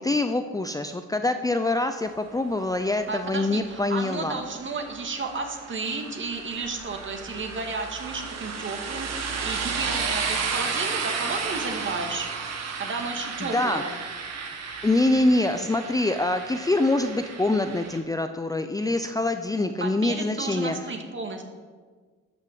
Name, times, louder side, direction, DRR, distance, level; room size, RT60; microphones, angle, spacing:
voice 1, 0.0-4.4 13.4-13.8 14.8-20.8, left 2 dB, 10° left, 7 dB, 0.6 m, -25 dB
sound 1, 3.0-18.0, right 5 dB, 60° right, 1.8 m, -33 dB
voice 2, 3.1-12.3 12.8-13.9 19.8-21.4, right 3 dB, 40° right, 4 dB, 2.2 m, -33 dB
13.0 x 6.1 x 7.8 m, 1.5 s
cardioid pair, 90°, 30 cm